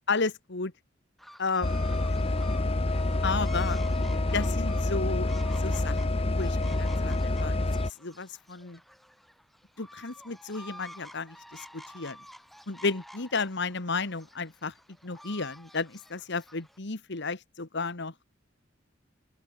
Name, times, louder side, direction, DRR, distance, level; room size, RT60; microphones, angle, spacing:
voice 1, 0.1-0.7 1.4-1.8 3.2-3.8 4.3-5.3 5.6-8.8 9.8-12.2 12.7-14.7 15.0-18.1, left 4 dB, 65° left, 1.7 m, -33 dB
sound 1, 1.2-16.8, equal, ahead, 7.3 m, -50 dB
sound 2, 1.6-7.9, left 2 dB, 30° left, 0.8 m, -27 dB
open air
head